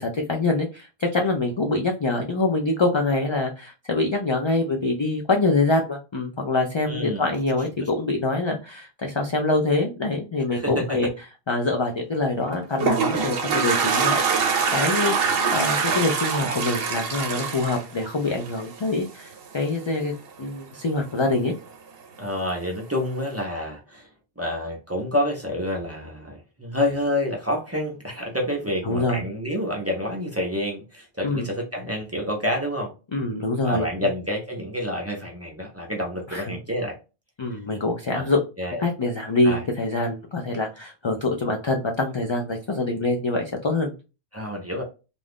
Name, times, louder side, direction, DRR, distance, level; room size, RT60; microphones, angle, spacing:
voice 1, 0.0-11.1 11.5-14.2 14.7-20.1 20.4-21.5 28.8-29.2 31.2-31.5 33.1-33.8 36.3-36.6 37.4-38.4 38.8-43.9, left 2 dB, 50° left, 0.3 m, -25 dB
voice 2, 6.9-7.3 7.8-7.9 10.5-11.0 22.2-24.1 24.4-32.9 33.6-37.0 38.1-38.3 38.6-38.8 39.4-39.6 44.3-44.8, left 1 dB, 15° right, 0.6 m, -28 dB
Toilet flush, 12.4-18.8, right 5 dB, 65° right, 0.8 m, -24 dB
2.6 x 2.4 x 3.4 m
omnidirectional pair, 1.1 m